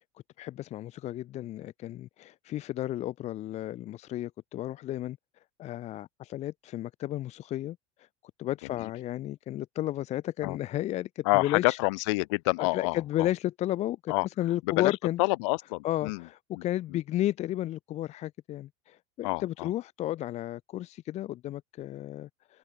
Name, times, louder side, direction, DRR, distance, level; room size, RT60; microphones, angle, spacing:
voice 1, 0.4-5.2 5.6-8.1 8.4-11.8 12.6-15.2 15.8-22.6, left 14 dB, 45° left, 1.0 m, -33 dB
voice 2, 11.2-13.3 14.1-14.3 14.6-16.2 16.5-16.6 16.9-17.0 19.2-19.7, left 26 dB, 70° left, 2.2 m, -28 dB
hypercardioid pair, 95°, 16 cm